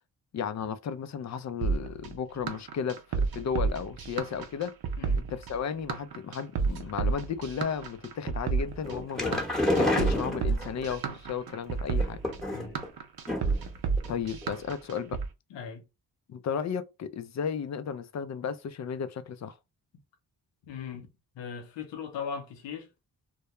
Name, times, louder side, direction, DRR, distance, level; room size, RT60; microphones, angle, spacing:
voice 1, 0.3-4.8 5.3-9.5 9.8-12.2 14.1-15.2 16.3-19.6, left 7 dB, 40° left, 0.4 m, -34 dB
sound 1, 1.6-15.3, right 5 dB, 60° right, 0.6 m, -31 dB
sound 2, 8.8-10.9 11.9-12.8 13.3-13.7 14.0-14.1 14.4-14.5, left 1 dB, ahead, 0.9 m, -29 dB
voice 2, 12.5-12.8 15.5-15.8 20.6-21.1 21.3-22.9, left 6 dB, 85° left, 0.7 m, -38 dB
2.2 x 2.2 x 2.9 m
supercardioid pair, 50°, 42 cm